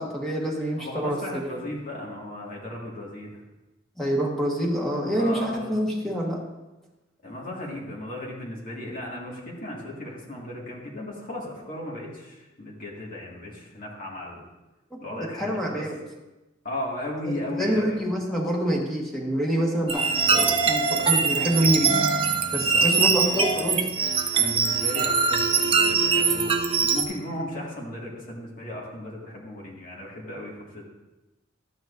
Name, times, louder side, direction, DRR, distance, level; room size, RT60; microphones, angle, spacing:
voice 1, 0.0-1.5 4.0-6.4 14.9-16.0 17.2-21.9 22.5-23.8, equal, ahead, -4 dB, 1.3 m, -26 dB
voice 2, 0.8-3.4 5.2-5.7 7.2-14.4 15.0-15.9 16.6-18.0 20.2-20.6 22.5-23.1 23.5-23.6 24.3-26.5 26.8-30.9, left 1 dB, 45° left, -3 dB, 1.9 m, -36 dB
sound 1, 19.9-27.0, right 5 dB, 25° right, 0.7 m, -22 dB
13.0 x 9.1 x 2.6 m, 1.1 s
head